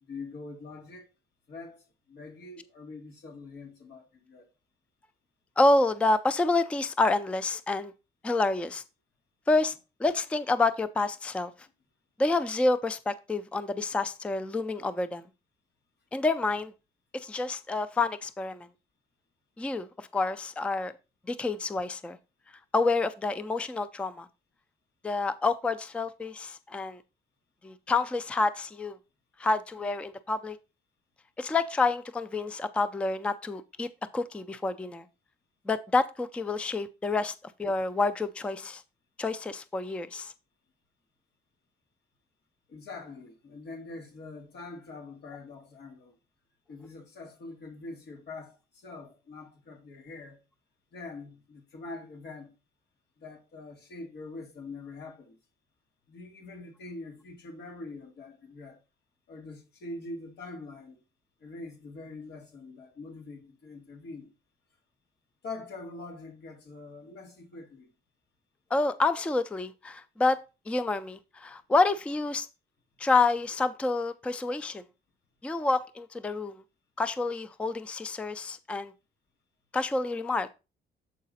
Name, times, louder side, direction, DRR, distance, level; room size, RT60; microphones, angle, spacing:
voice 1, 0.0-1.1 1.5-4.4 42.7-46.1 46.7-50.4 50.9-52.5 53.2-55.4 56.1-58.8 59.3-61.0 61.4-64.3 65.4-67.9, left 3 dB, 90° left, 2.1 m, -44 dB
voice 2, 5.6-7.9 8.2-8.8 9.5-9.7 10.0-11.5 12.2-15.3 16.1-16.7 17.1-18.7 19.6-20.9 21.3-22.2 22.7-24.3 25.0-27.0 27.6-29.0 29.4-30.6 31.4-33.9 34.1-35.1 35.7-38.8 39.2-40.3 68.7-70.4 70.7-72.5 73.0-74.8 75.4-76.6 77.0-78.9 79.7-80.5, left 3 dB, 5° left, 0.3 m, -28 dB
7.4 x 4.8 x 4.1 m
wide cardioid pair, 175°, 17 cm